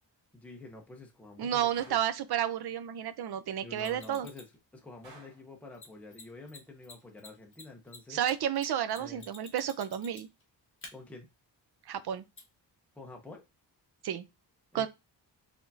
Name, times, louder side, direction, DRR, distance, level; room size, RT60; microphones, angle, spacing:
voice 1, 0.3-2.0 3.6-4.5 4.7-8.2 9.0-9.3 10.9-11.3 12.9-13.4 14.7-14.9, left 2 dB, 5° left, 0.7 m, -48 dB
voice 2, 1.4-4.3 8.1-10.3 11.9-12.2 14.0-14.2 14.7-14.9, right 10 dB, 60° right, 0.6 m, -31 dB
Gunshot gunfire, 1.8-2.2 5.0-5.5, right 3 dB, 85° right, 2.3 m, -54 dB
Mechanisms, 3.8-4.5 5.7-5.8 6.1-6.2 6.5-6.6 6.8-10.4 10.8-10.9 12.4-12.5, left 3 dB, 30° left, 1.4 m, -49 dB
4.9 x 3.4 x 2.7 m
wide cardioid pair, 175°, 43 cm